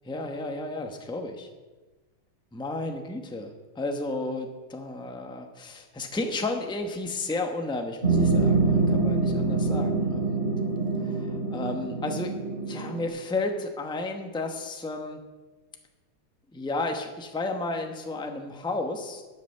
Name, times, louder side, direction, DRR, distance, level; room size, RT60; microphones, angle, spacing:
voice 1, 0.1-1.5 2.5-10.4 11.0-12.3 12.6-15.2 16.5-19.2, left 2 dB, 5° left, 4 dB, 0.7 m, -33 dB
sound 1, 8.0-13.1, right 3 dB, 35° right, 3.1 m, -25 dB
12.5 x 8.0 x 6.6 m, 1.3 s
omnidirectional pair, 2.0 m